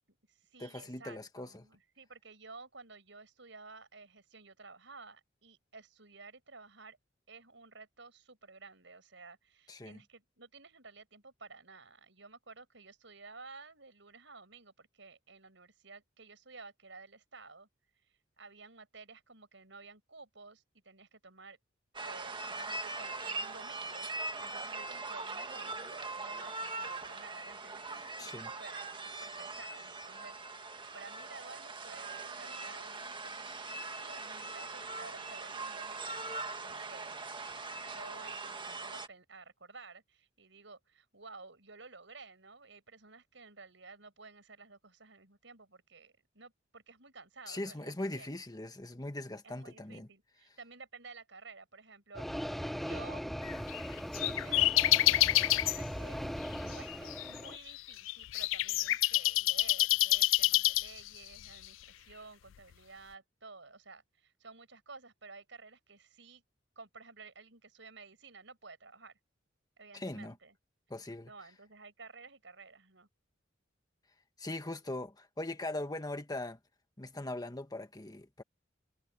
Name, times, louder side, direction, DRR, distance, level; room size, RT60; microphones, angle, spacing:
voice 1, 0.1-7.0 7.3-17.7 18.4-21.6 22.0-36.0 36.6-37.2 37.8-48.4 49.4-53.2 54.2-56.3 56.6-66.4 66.8-69.1 69.8-70.5 71.2-73.1, right 4 dB, 70° right, 7.9 m, -53 dB
voice 2, 0.6-1.7 9.7-10.0 28.2-28.5 47.5-50.1 69.9-70.4 70.9-71.3 74.4-76.6 77.0-78.4, left 2 dB, 20° left, 1.6 m, -40 dB
sound 1, 21.9-39.1, right 3 dB, 25° right, 1.5 m, -41 dB
sound 2, 52.1-57.6, equal, ahead, 0.7 m, -39 dB
sound 3, 53.4-55.8 56.4-61.3, left 17 dB, 85° left, 0.3 m, -28 dB
head